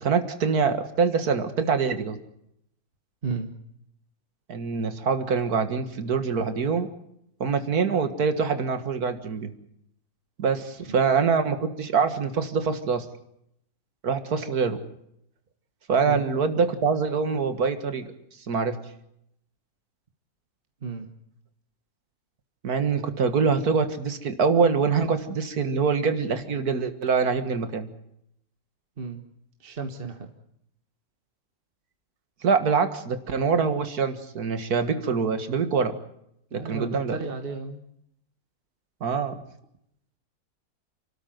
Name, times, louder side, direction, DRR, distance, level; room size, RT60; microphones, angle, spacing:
voice 1, 0.0-2.2 4.5-6.9 7.4-9.5 10.4-13.1 14.0-14.8 15.9-18.1 18.5-18.8 22.6-27.9 32.4-36.0 36.5-37.2 39.0-39.4, right 5 dB, 85° right, 9 dB, 2.2 m, -24 dB
voice 2, 29.6-30.3 36.5-37.8, right 4 dB, 40° right, 5 dB, 1.7 m, -33 dB
29.0 x 13.0 x 9.2 m, 0.75 s
omnidirectional pair, 1.6 m